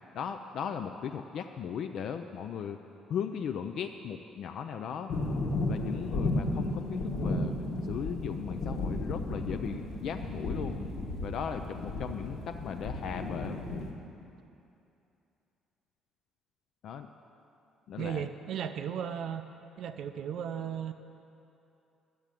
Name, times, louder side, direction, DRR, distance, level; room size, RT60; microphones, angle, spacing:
voice 1, 0.1-2.8 3.1-5.1 5.7-7.6 7.8-10.8 11.2-13.8 16.8-17.1 17.9-18.3, left 7 dB, 50° left, 6 dB, 0.4 m, -37 dB
sound 1, 5.1-13.9, left 2 dB, 75° left, 1.4 m, -34 dB
voice 2, 18.0-19.4 19.8-20.9, right 8 dB, 55° right, 8 dB, 0.5 m, -35 dB
10.5 x 7.5 x 8.3 m, 2.7 s
cardioid pair, 180°, 0 cm